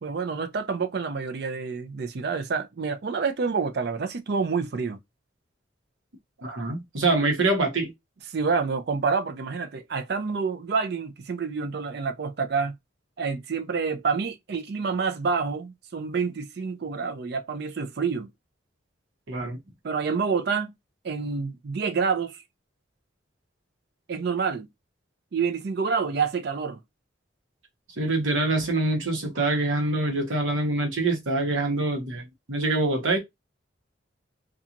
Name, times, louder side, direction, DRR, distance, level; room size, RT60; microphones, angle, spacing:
voice 1, 0.0-5.0 8.3-12.8 13.2-18.3 19.8-20.7 21.0-22.4 24.1-24.7 25.3-26.8, right 5 dB, 55° right, 0.4 m, -28 dB
voice 2, 6.4-7.9 19.3-19.6 28.0-33.2, right 2 dB, 90° right, 0.9 m, -25 dB
2.8 x 2.3 x 2.4 m
head